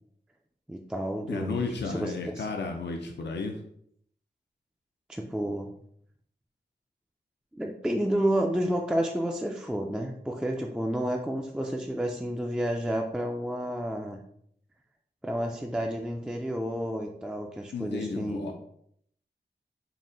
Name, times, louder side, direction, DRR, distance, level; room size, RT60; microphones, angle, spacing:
voice 1, 0.7-1.7 1.9-2.5 5.1-5.7 7.5-14.2 15.2-18.5, equal, 5° right, 1 dB, 0.3 m, -30 dB
voice 2, 1.3-3.6 17.7-18.5, left 4 dB, 70° left, 3 dB, 0.5 m, -33 dB
4.0 x 2.1 x 3.7 m, 0.69 s
wide cardioid pair, 65°, 19 cm